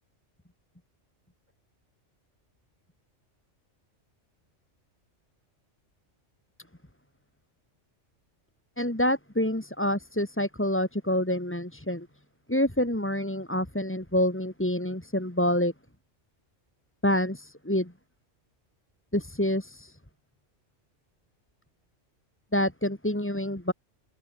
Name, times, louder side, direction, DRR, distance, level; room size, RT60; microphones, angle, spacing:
voice 1, 8.8-12.1 12.5-15.7 17.0-17.9 19.1-20.0 22.5-23.7, left 1 dB, 10° left, 2.5 m, -27 dB
open air
omnidirectional pair, 1.3 m